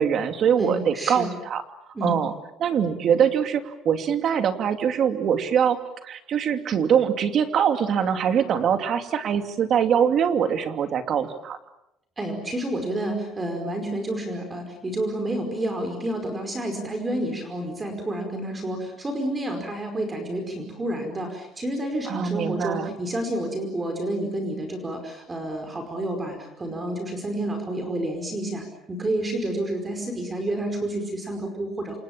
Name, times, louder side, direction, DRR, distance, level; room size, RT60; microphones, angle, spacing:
voice 1, 0.0-1.6 2.0-2.3 2.6-11.6 22.1-22.9, right 8 dB, 45° right, 8 dB, 2.6 m, -23 dB
voice 2, 0.6-1.3 1.9-2.2 12.2-32.0, right 1 dB, 15° right, 5 dB, 5.0 m, -29 dB
28.5 x 28.0 x 7.4 m, 0.86 s
cardioid pair, 155°, 0 cm